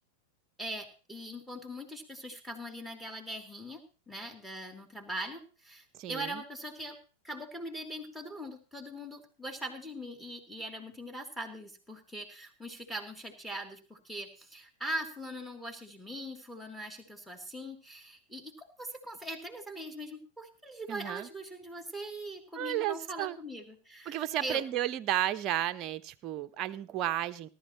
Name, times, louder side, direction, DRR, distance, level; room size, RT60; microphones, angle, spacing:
voice 1, 0.6-3.8 4.1-7.0 7.2-24.6, right 1 dB, ahead, 4 dB, 3.1 m, -41 dB
voice 2, 5.9-6.4 20.9-21.3 22.6-23.4 24.1-27.5, right 13 dB, 35° right, 10 dB, 0.8 m, -33 dB
18.5 x 13.0 x 3.1 m, 0.36 s
figure-of-eight pair, 90°, 0 cm